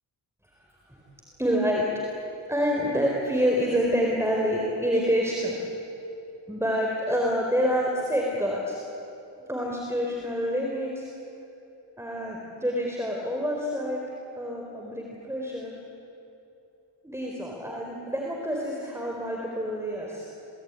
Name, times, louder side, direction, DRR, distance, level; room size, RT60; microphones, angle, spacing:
voice 1, 1.4-1.9 2.5-5.6 6.5-8.8 9.5-11.1 12.0-14.0 14.3-15.7 17.0-20.3, equal, 5° right, -1 dB, 4.5 m, -27 dB
28.5 x 20.0 x 9.9 m, 2.8 s
cardioid pair, 90°, 45 cm